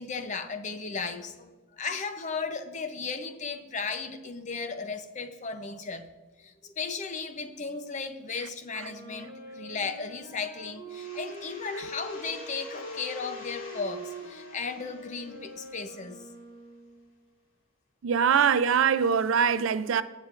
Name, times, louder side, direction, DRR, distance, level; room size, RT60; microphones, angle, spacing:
voice 1, 0.0-6.1 6.4-16.2, left 4 dB, 35° left, 0.6 m, -35 dB
Wind instrument woodwind instrument, 8.7-17.1, right 1 dB, 90° left, 3.1 m, -43 dB
sound 1, 10.9-16.4, left 3 dB, 70° left, 2.5 m, -50 dB
voice 2, 18.0-20.0, right 7 dB, 70° right, 0.4 m, -23 dB
15.5 x 7.5 x 2.5 m
head